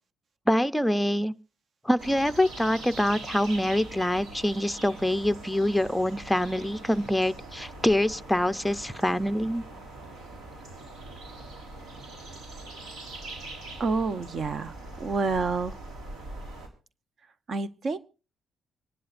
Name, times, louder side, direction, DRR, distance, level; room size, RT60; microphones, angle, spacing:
voice 1, 0.5-1.3 1.8-9.6, left 1 dB, 5° left, 0.6 m, -25 dB
sound 1, 2.0-16.7, right 2 dB, 80° right, 3.8 m, -42 dB
voice 2, 13.8-15.7 17.5-18.0, right 4 dB, 50° right, 0.9 m, -28 dB
25.5 x 11.0 x 2.5 m
cardioid pair, 90°, 0 cm